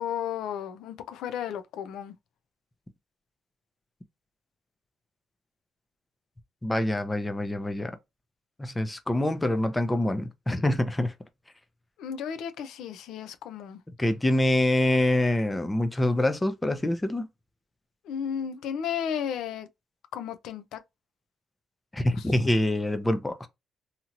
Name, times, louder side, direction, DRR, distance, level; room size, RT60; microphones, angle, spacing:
voice 1, 0.0-2.1 12.0-13.8 18.1-19.7 20.1-20.8 22.1-22.2, left 8 dB, 85° left, 0.4 m, -33 dB
voice 2, 6.6-8.0 8.6-11.1 14.0-17.3 21.9-23.5, left 1 dB, 15° left, 0.5 m, -25 dB
2.9 x 2.8 x 2.4 m
cardioid pair, 90°, 0 cm